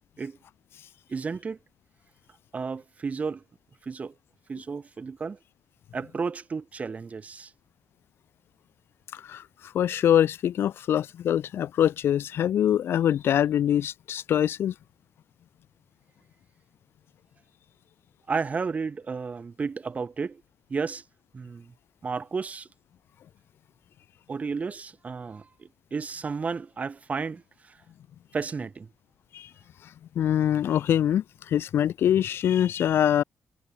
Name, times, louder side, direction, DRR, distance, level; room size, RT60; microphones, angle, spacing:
voice 1, 1.1-1.6 2.5-3.4 3.8-4.1 4.5-5.4 5.9-7.5 18.3-20.4 20.7-21.0 21.3-21.7 22.0-22.7 24.3-27.8 28.3-28.9, right 5 dB, 35° right, 2.9 m, -32 dB
voice 2, 9.1-14.7 29.3-29.5 30.2-33.2, left 10 dB, 75° left, 0.5 m, -24 dB
cardioid pair, 120°, 4 cm